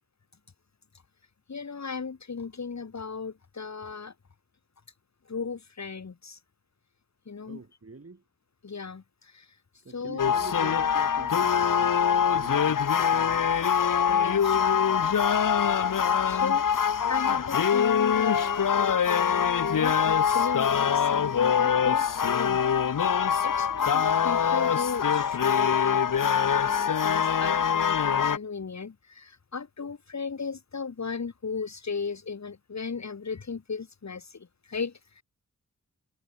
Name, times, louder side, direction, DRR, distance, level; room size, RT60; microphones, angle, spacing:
voice 1, 1.5-4.1 5.3-6.4 7.3-7.6 8.6-9.6 9.9-10.3 14.1-14.8 16.2-22.6 23.4-35.2, left 5 dB, 60° left, 2.1 m, -36 dB
voice 2, 7.5-8.2 9.8-13.5, right 3 dB, 45° right, 7.0 m, -45 dB
sound 1, 10.2-28.4, left 7 dB, 85° left, 1.1 m, -24 dB
wide cardioid pair, 80°, 32 cm